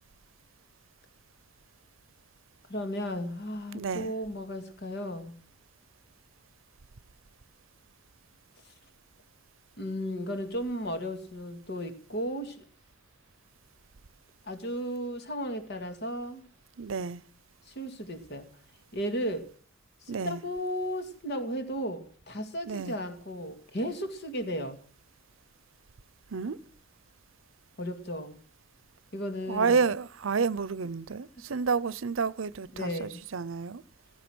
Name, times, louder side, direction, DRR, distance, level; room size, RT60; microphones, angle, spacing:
voice 1, 2.7-5.4 9.8-12.7 14.5-16.4 17.7-18.5 18.9-19.4 20.0-24.8 27.8-28.4 29.1-29.8 31.4-31.5 32.7-33.2, equal, 60° left, 2.3 m, -35 dB
voice 2, 3.7-4.1 16.8-17.2 20.1-20.4 22.7-23.0 26.3-26.6 29.5-33.8, right 5 dB, 90° right, 0.7 m, -30 dB
15.5 x 14.0 x 6.1 m
head